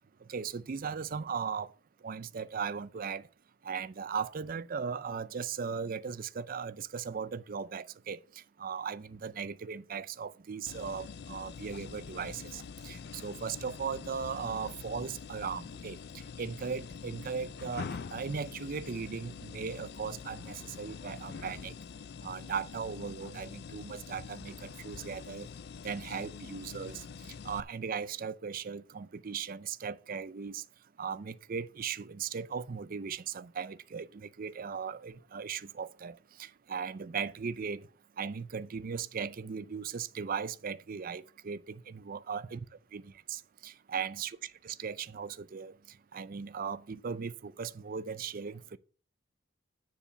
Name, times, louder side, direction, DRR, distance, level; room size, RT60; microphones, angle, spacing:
voice 1, 0.3-1.7 2.0-3.3 3.6-21.7 22.2-25.5 25.8-27.0 27.4-30.6 31.0-37.9 38.2-42.7 42.9-45.7 46.1-48.8, right 6 dB, 45° right, 0.4 m, -38 dB
sound 1, 10.7-27.6, left 5 dB, 50° left, 0.4 m, -45 dB
10.0 x 4.8 x 6.7 m
head